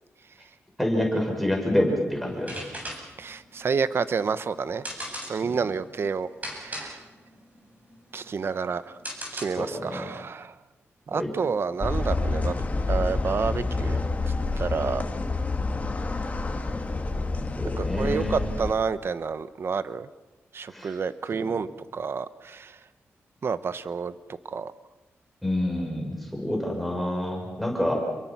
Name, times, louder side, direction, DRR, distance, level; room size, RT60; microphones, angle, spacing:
voice 1, 0.8-2.5 5.5-5.6 9.6-10.1 11.2-11.3 17.6-18.5 20.7-21.0 25.4-28.0, left 1 dB, ahead, 0 dB, 6.3 m, -27 dB
sound 1, 2.3-9.9, equal, 30° right, 7.9 m, -39 dB
voice 2, 3.2-4.8 5.3-6.3 6.6-7.0 8.1-9.0 9.3-10.5 11.1-12.6 12.9-14.0 14.6-15.0 17.6-20.1 20.5-21.7 21.9-22.8 23.4-24.1 24.5-24.7, right 5 dB, 55° right, 13 dB, 1.0 m, -29 dB
sound 2, 11.8-18.7, left 3 dB, 30° left, 2.3 m, -28 dB
28.5 x 23.0 x 6.1 m, 1.1 s
cardioid pair, 90°, 5 cm